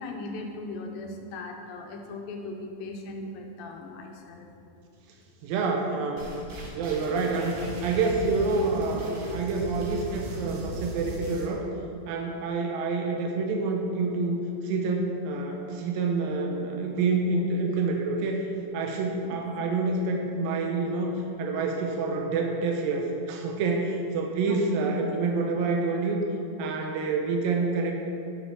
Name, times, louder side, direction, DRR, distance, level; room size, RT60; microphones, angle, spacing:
voice 1, 0.0-4.5 9.3-9.7 19.2-19.4 24.5-24.6, left 2 dB, 85° left, 3 dB, 2.6 m, -38 dB
voice 2, 5.4-6.3 6.7-11.6 12.1-18.4 18.7-26.2 26.6-27.9, right 3 dB, 85° right, 1 dB, 2.5 m, -27 dB
sound 1, 6.2-11.5, right 2 dB, 65° right, 1.7 m, -38 dB
7.7 x 6.5 x 4.6 m, 2.7 s
omnidirectional pair, 4.0 m